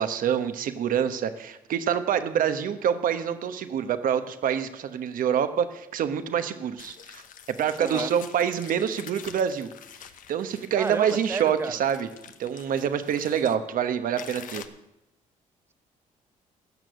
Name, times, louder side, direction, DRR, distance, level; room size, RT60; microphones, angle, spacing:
voice 1, 0.0-7.2 7.6-9.7 10.3-12.1 12.4-14.6, right 8 dB, 65° right, 1.0 m, -26 dB
sound 1, 6.8-13.6 14.2-14.7, left 8 dB, 65° left, 0.9 m, -45 dB
voice 2, 7.8-8.1 10.8-11.8, right 4 dB, 15° right, 0.4 m, -32 dB
16.0 x 6.2 x 6.3 m
supercardioid pair, 70°, 15 cm